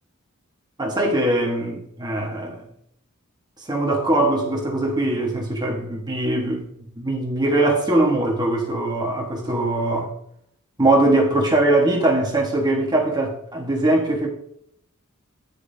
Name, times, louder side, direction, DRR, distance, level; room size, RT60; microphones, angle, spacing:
voice 1, 0.8-2.7 3.6-10.1 10.8-14.3, right 2 dB, 20° right, 1.4 m, -21 dB
10.5 x 9.8 x 2.8 m
head